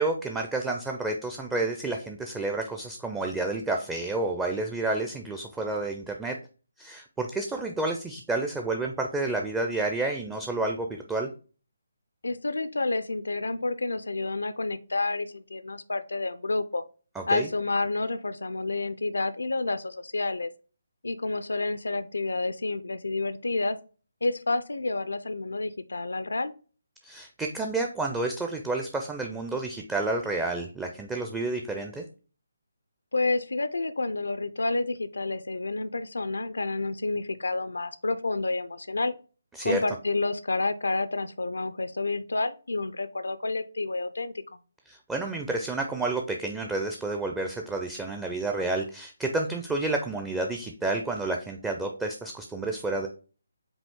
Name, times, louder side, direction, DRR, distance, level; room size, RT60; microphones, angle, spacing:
voice 1, 0.0-6.4 6.8-11.3 17.2-17.5 27.0-32.1 39.5-39.8 44.9-53.1, right 2 dB, 10° right, 2 dB, 0.4 m, -30 dB
voice 2, 12.2-16.8 17.3-20.5 21.0-23.8 24.2-26.5 33.1-39.1 39.6-44.3, left 3 dB, 85° left, 12 dB, 0.5 m, -29 dB
5.1 x 2.8 x 3.6 m, 0.36 s
figure-of-eight pair, 155°, 0 cm